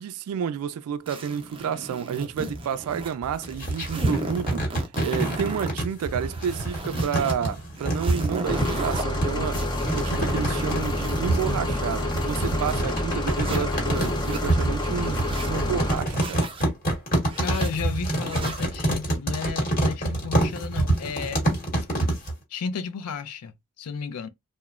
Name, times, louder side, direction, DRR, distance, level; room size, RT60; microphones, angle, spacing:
voice 1, 0.0-9.6 9.9-16.4, right 7 dB, 75° right, 0.3 m, -30 dB
sound 1, 1.1-3.2 3.4-5.7 6.1-7.3 7.7-9.0 9.5-12.8 13.3-14.4 14.9-15.5 16.1-16.7 17.2-17.7 18.2-18.7, right 2 dB, 25° right, 0.5 m, -36 dB
sound 2, 3.2-22.3, right 1 dB, 40° left, 1.1 m, -26 dB
sound 3, 8.4-16.0, left 1 dB, 20° left, 0.6 m, -28 dB
voice 2, 13.4-13.8 17.4-21.5 22.5-24.3, left 6 dB, 85° left, 0.4 m, -33 dB
3.0 x 2.1 x 2.3 m
head